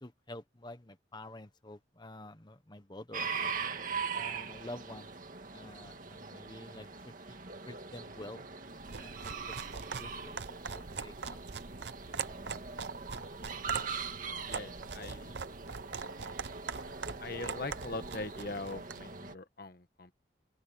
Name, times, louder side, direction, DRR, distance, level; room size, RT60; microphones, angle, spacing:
voice 1, 0.0-3.5 4.1-5.1 5.5-7.4 7.7-8.5 8.9-10.4 10.7-11.4, left 1 dB, 25° left, 1.2 m, -49 dB
sound 1, 3.1-19.3, right 5 dB, 45° right, 2.1 m, -41 dB
sound 2, 8.8-19.1, right 5 dB, 65° right, 0.8 m, -42 dB
voice 2, 14.4-15.4 17.2-20.1, left 2 dB, 55° left, 1.4 m, -42 dB
head